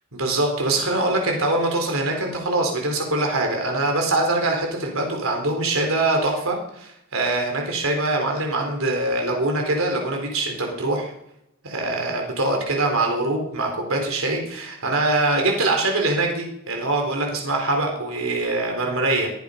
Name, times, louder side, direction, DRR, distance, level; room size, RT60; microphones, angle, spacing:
voice 1, 0.1-11.1 11.6-19.3, right 2 dB, 75° right, 2 dB, 4.2 m, -23 dB
22.0 x 11.5 x 5.2 m, 0.81 s
head